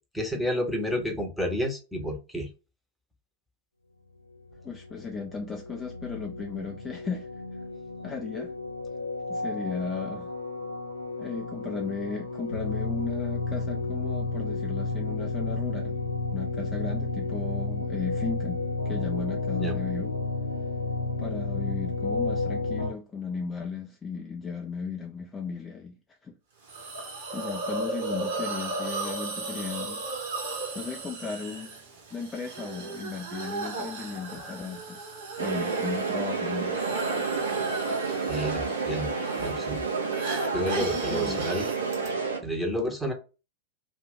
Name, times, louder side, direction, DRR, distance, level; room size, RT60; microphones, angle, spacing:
voice 1, 0.1-2.5 19.6-19.7 38.3-39.1 39.4-39.8 40.5-41.7 42.4-43.1, equal, ahead, 0.9 m, -30 dB
sound 1, 4.5-22.9, left 3 dB, 80° left, 0.7 m, -32 dB
voice 2, 4.6-7.4 8.0-8.5 9.3-10.3 11.2-16.0 16.3-18.6 18.8-20.1 21.2-26.0 26.2-26.4 27.3-30.0 30.7-31.8 32.1-37.3 40.8-41.5, left 5 dB, 15° left, 0.4 m, -36 dB
Hiss, 26.7-42.1, right 3 dB, 55° right, 1.1 m, -36 dB
sound 2, 35.4-42.4, right 4 dB, 75° right, 0.7 m, -30 dB
2.5 x 2.5 x 3.5 m
figure-of-eight pair, 90°, 0 cm